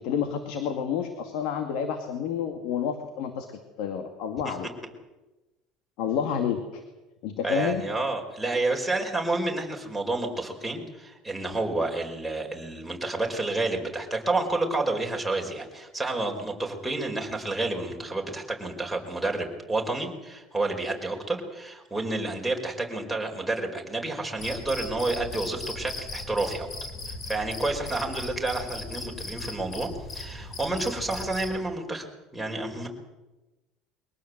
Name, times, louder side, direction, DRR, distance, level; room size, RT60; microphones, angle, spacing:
voice 1, 0.0-3.5 3.8-4.7 6.0-6.8 7.2-7.8, left 8 dB, 75° left, 7 dB, 2.2 m, -29 dB
voice 2, 7.4-26.7 27.1-32.1 32.3-32.9, right 2 dB, ahead, -1 dB, 5.0 m, -30 dB
Cricket, 24.4-31.6, left 2 dB, 40° left, 6.8 m, -38 dB
23.0 x 18.5 x 7.9 m, 1.1 s
supercardioid pair, 115°, 0 cm